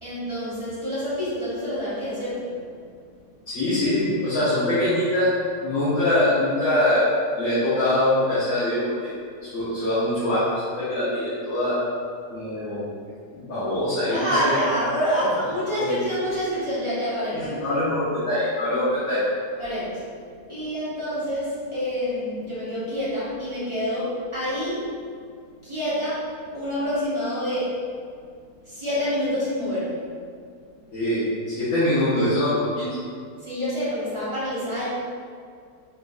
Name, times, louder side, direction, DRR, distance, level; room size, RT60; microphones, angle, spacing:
voice 1, 0.0-2.6 14.1-17.5 19.6-20.0 20.5-24.9 25.6-27.8 28.7-30.1 33.4-34.9, equal, 20° right, -11 dB, 0.9 m, -27 dB
voice 2, 3.5-5.3 5.6-9.1 9.4-11.8 12.3-12.9 13.3-14.5 15.8-16.0 17.3-19.2 30.9-32.9, left 1 dB, 60° left, -13 dB, 1.6 m, -23 dB
4.5 x 4.0 x 2.5 m, 2.2 s
omnidirectional pair, 1.7 m